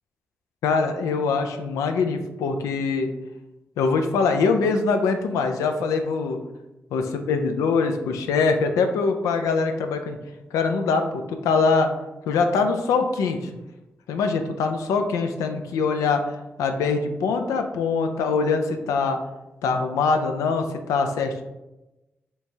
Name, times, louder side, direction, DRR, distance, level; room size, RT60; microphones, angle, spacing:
voice 1, 0.6-3.1 3.8-6.4 6.9-10.2 10.5-11.9 12.3-13.4 14.1-19.2 19.6-21.4, left 4 dB, 90° left, 6 dB, 0.4 m, -23 dB
4.5 x 3.4 x 2.7 m, 1.0 s
supercardioid pair, 40°, 5 cm